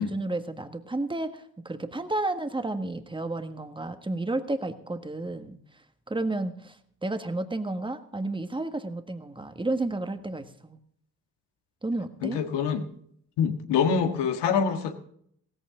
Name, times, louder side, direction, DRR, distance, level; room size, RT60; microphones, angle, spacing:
voice 1, 0.0-10.8 11.8-12.4, right 2 dB, 10° right, 8 dB, 1.6 m, -32 dB
voice 2, 12.2-12.9 13.4-14.9, left 6 dB, 75° left, 6 dB, 1.8 m, -25 dB
16.0 x 14.5 x 3.8 m, 0.66 s
supercardioid pair, 60°, 41 cm